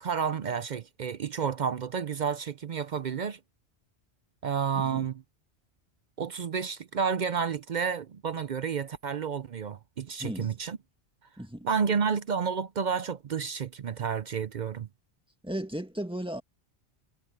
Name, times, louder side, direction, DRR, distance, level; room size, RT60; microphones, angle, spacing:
voice 1, 0.0-3.4 4.4-5.1 6.2-10.8 11.6-14.9, right 6 dB, 50° right, 0.6 m, -30 dB
voice 2, 10.2-10.6 11.4-11.7 15.4-16.4, right 1 dB, 5° right, 1.9 m, -35 dB
omnidirectional pair, 1.1 m